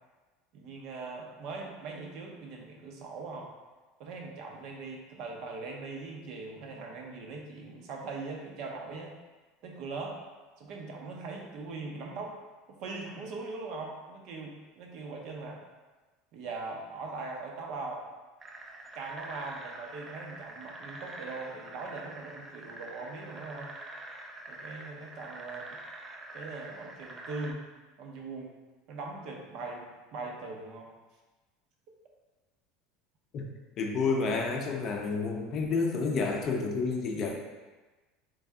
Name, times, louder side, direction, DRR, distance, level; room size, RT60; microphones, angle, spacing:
voice 1, 0.5-3.5 4.0-9.2 9.6-10.2 10.6-12.4 12.7-15.6 16.3-18.0 18.9-23.7 24.5-25.8 26.3-27.6 28.0-28.6 28.9-30.9, right 3 dB, 55° right, 0 dB, 0.7 m, -41 dB
sound 1, 18.4-27.5, right 2 dB, 20° right, 0.4 m, -45 dB
voice 2, 33.8-37.4, left 4 dB, 40° left, 1 dB, 0.5 m, -30 dB
3.3 x 2.6 x 3.4 m, 1.2 s
supercardioid pair, 135°, 0 cm